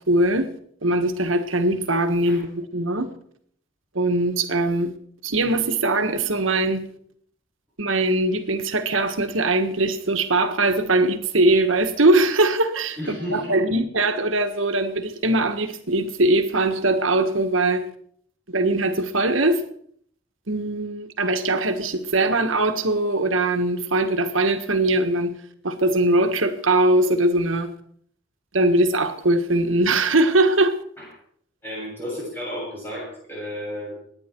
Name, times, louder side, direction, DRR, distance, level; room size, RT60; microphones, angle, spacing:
voice 1, 0.1-0.5 0.8-3.1 3.9-4.9 5.2-6.8 7.8-17.8 18.5-19.6 20.5-25.3 25.6-27.7 28.5-30.8, right 2 dB, 80° right, 7 dB, 1.6 m, -21 dB
voice 2, 13.0-13.6 31.0-31.1 31.6-33.9, equal, 10° left, -5 dB, 7.5 m, -32 dB
25.0 x 9.9 x 4.6 m, 0.64 s
head